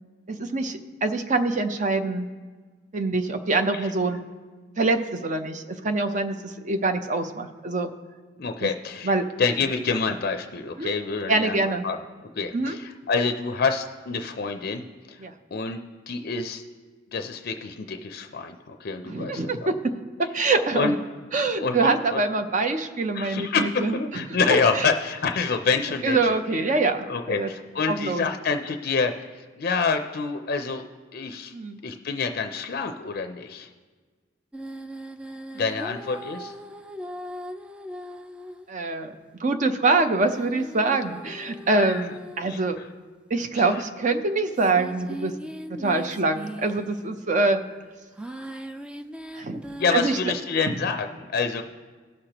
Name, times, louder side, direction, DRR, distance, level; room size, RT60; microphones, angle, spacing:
voice 1, 0.3-2.3 2.9-4.2 4.8-7.9 8.6-8.7 9.0-9.3 10.8-10.9 11.3-11.9 12.5-12.8 15.2-15.3 19.0-19.9 20.3-21.0 21.3-24.9 26.0-27.5 27.9-28.2 31.5-31.8 35.5-35.6 38.7-39.1 39.4-42.8 43.3-45.3 45.7-47.6 49.3-49.6 49.9-50.2 50.7-50.8, right 3 dB, 40° right, 8 dB, 0.6 m, -25 dB
voice 2, 8.4-15.2 15.5-15.8 16.1-16.6 17.1-19.5 20.7-20.9 21.6-22.2 23.1-26.4 27.0-30.8 31.1-31.5 31.8-33.7 35.6-36.5 41.7-42.0 42.4-42.9 43.6-43.8 49.7-51.6, left 4 dB, 55° left, 7 dB, 0.5 m, -27 dB
sound 1, 34.5-38.7 40.2-42.9 43.7-43.8 44.6-47.3 48.2-50.2, right 1 dB, 5° right, 0.3 m, -39 dB
18.0 x 6.5 x 2.9 m, 1.4 s
head